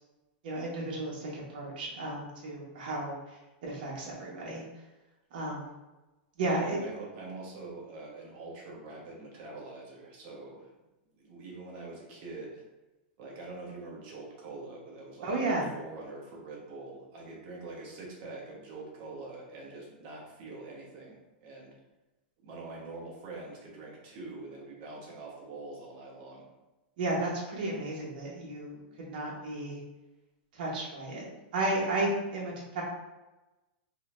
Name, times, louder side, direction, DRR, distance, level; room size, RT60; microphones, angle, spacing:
voice 1, 0.4-3.2 3.6-4.6 5.3-5.7 6.4-6.8 15.2-15.6 27.0-29.8 30.5-31.3 31.5-32.8, right 2 dB, 60° right, -4 dB, 1.2 m, -33 dB
voice 2, 6.4-10.7 11.2-12.6 13.2-21.7 22.4-26.5, right 3 dB, 45° right, -3 dB, 1.3 m, -44 dB
4.1 x 2.9 x 2.6 m, 1.1 s
supercardioid pair, 145°, 5 cm